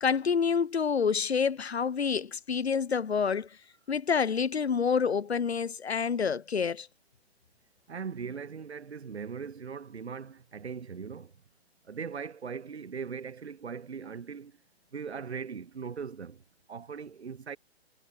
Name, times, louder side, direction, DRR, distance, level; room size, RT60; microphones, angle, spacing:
voice 1, 0.0-3.5 3.9-6.9, left 6 dB, 80° left, 0.6 m, -28 dB
voice 2, 7.9-11.3 11.8-14.6 14.9-16.4 16.7-17.6, right 6 dB, 80° right, 0.7 m, -39 dB
figure-of-eight pair, 120°, 32 cm